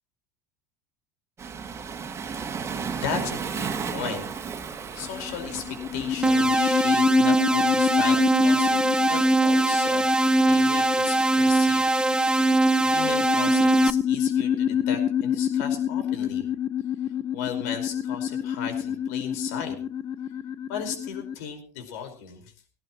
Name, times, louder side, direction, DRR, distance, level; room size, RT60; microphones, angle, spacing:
Waves surf, 1.4-6.5, right 6 dB, 30° right, 2.2 m, -33 dB
voice 1, 2.5-4.2 4.7-8.8 9.0-11.8 12.8-16.4 17.3-19.8 20.7-22.5, left 7 dB, 65° left, 5 dB, 5.0 m, -36 dB
sound 1, 5.0-21.3, left 9 dB, 40° left, 0.8 m, -28 dB
sound 2, 6.2-13.9, right 2 dB, 10° right, 0.8 m, -21 dB
18.0 x 18.0 x 3.1 m, 0.37 s
hypercardioid pair, 75°, 9 cm